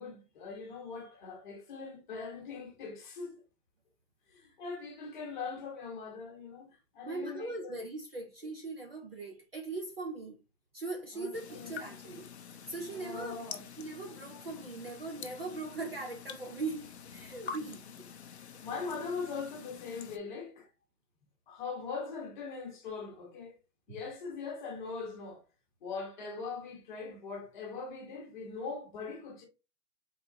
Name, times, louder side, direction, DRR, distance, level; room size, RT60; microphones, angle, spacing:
voice 1, 0.0-3.4 4.3-7.8 11.1-11.8 12.9-13.6 17.6-17.8 18.6-20.7 21.5-23.6 23.9-25.4 25.8-29.5, left 4 dB, 30° left, 1.2 m, -41 dB
voice 2, 7.0-10.4 10.7-12.3 12.7-13.4 13.8-17.8, right 3 dB, 40° right, 0.5 m, -40 dB
sound 1, 11.3-20.2, left 6 dB, 45° left, 0.5 m, -47 dB
4.4 x 3.8 x 2.5 m
hypercardioid pair, 165°, 49 cm